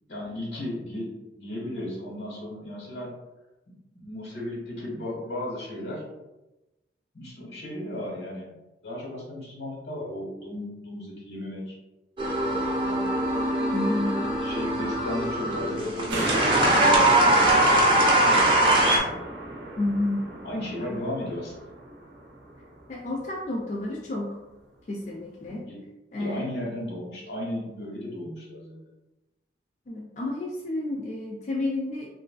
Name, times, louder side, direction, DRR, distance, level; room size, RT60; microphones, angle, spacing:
voice 1, 0.1-3.1 3.7-6.0 7.1-8.5 8.8-11.8 12.4-13.0 14.2-17.0 17.7-18.5 20.4-21.5 25.5-25.8 26.2-28.8, left 1 dB, 85° left, -3 dB, 1.3 m, -35 dB
sound 1, 12.2-19.0, right 1 dB, 30° right, 0.5 m, -22 dB
voice 2, 13.7-14.3 19.8-20.4 20.8-21.0 22.9-24.4 24.9-25.7 26.1-26.4 29.9-32.1, left 2 dB, 40° left, -2 dB, 0.3 m, -30 dB
sound 2, 16.1-22.7 23.2-23.3, right 1 dB, 85° right, 0.5 m, -33 dB
3.0 x 2.4 x 2.3 m, 0.99 s
head